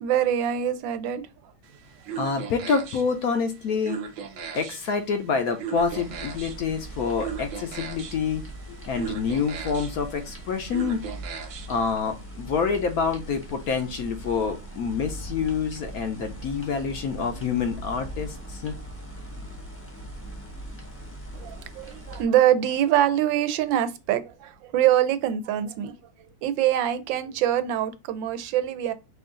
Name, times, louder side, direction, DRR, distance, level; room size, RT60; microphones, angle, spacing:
voice 1, 0.0-1.2 21.3-25.9 26.4-28.9, right 11 dB, 90° right, 1.3 m, -24 dB
sound 1, 1.6-11.9, right 7 dB, 60° right, 0.8 m, -39 dB
voice 2, 2.2-4.0 4.5-8.4 8.9-11.0 11.7-18.7, left 5 dB, 65° left, 1.0 m, -27 dB
sound 2, 5.7-22.2, right 1 dB, 10° left, 0.8 m, -40 dB
5.2 x 2.5 x 3.7 m
omnidirectional pair, 2.0 m